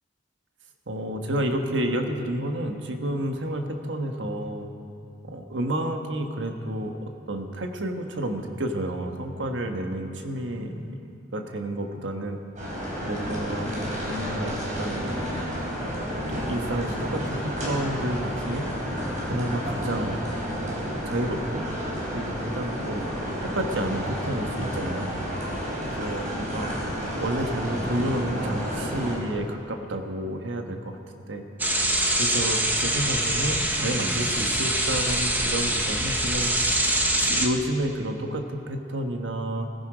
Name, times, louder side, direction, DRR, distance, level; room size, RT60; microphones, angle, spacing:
voice 1, 0.9-4.7 5.2-12.4 13.0-13.7 14.1-15.0 16.1-18.6 19.2-20.2 20.5-21.6 22.1-23.1 23.4-25.1 25.8-26.7 27.2-31.0 31.3-31.4 32.1-36.5 37.2-39.7, right 1 dB, 70° right, 4 dB, 1.3 m, -30 dB
sound 1, 12.6-29.2, equal, 40° right, 4.2 m, -31 dB
sound 2, 31.6-37.5, right 1 dB, 10° right, 0.9 m, -24 dB
17.5 x 15.5 x 5.0 m, 2.6 s
head